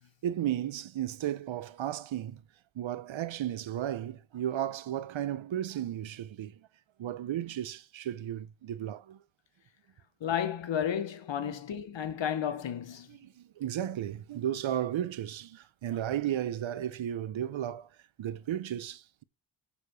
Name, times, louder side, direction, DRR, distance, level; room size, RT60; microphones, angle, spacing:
voice 1, 0.2-2.4 2.7-6.6 7.0-9.2 11.4-11.6 13.1-17.9 18.2-19.2, right 11 dB, 75° right, 0.7 m, -34 dB
voice 2, 10.2-13.1, left 9 dB, 65° left, 1.1 m, -32 dB
6.8 x 5.2 x 6.2 m
wide cardioid pair, 110°, 48 cm